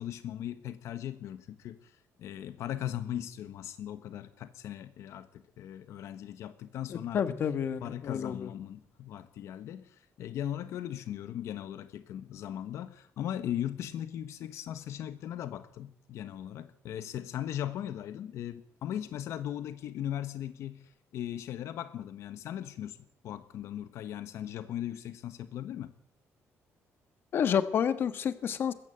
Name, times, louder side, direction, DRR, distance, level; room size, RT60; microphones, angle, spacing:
voice 1, 0.0-7.4 7.8-23.0 23.2-25.9, left 11 dB, 65° left, 11 dB, 1.2 m, -38 dB
voice 2, 6.9-8.5 27.3-28.7, left 8 dB, 45° left, 11 dB, 1.4 m, -29 dB
21.0 x 15.5 x 9.1 m, 0.69 s
cardioid pair, 175°, 5 cm